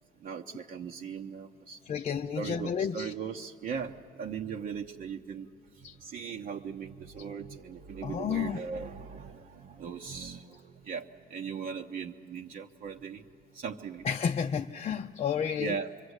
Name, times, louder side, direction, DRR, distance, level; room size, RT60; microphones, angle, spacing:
voice 1, 0.2-1.8 2.4-5.5 5.8-13.2 13.5-14.1 15.6-15.9, right 6 dB, 55° right, 1.0 m, -39 dB
voice 2, 1.9-3.1 5.8-6.0 8.0-8.6 14.0-15.8, left 7 dB, 40° left, 0.6 m, -31 dB
25.5 x 23.5 x 8.1 m
cardioid pair, 110°, 17 cm